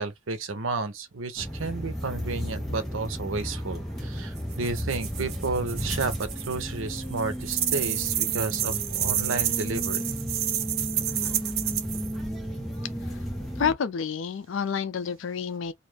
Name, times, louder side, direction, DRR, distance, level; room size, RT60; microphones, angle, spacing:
voice 1, 0.0-6.1 6.5-10.0, right 3 dB, 85° right, 0.7 m, -32 dB
sound 1, 1.4-13.7, equal, ahead, 0.9 m, -34 dB
sound 2, 4.4-6.6 6.9-12.1, right 11 dB, 50° right, 0.5 m, -29 dB
voice 2, 13.6-15.7, left 6 dB, 70° left, 0.4 m, -29 dB
2.7 x 2.5 x 3.3 m
head